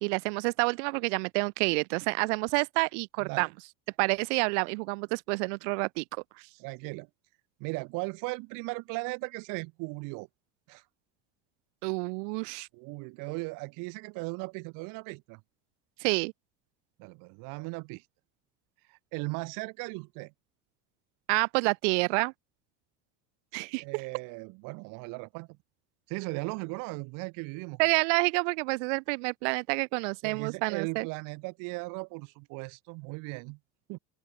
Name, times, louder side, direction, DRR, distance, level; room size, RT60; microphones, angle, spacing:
voice 1, 0.0-3.5 4.0-6.0 11.8-12.7 16.0-16.3 21.3-22.3 23.5-23.8 27.8-31.1, right 33 dB, 80° right, 1.4 m, -28 dB
voice 2, 3.2-3.5 6.6-7.1 7.6-10.3 10.7-10.8 12.7-15.4 17.0-18.0 18.9-20.3 23.8-25.5 26.1-27.8 30.2-33.6 33.9-34.0, right 29 dB, 60° right, 2.1 m, -37 dB
open air
cardioid pair, 165°, 35 cm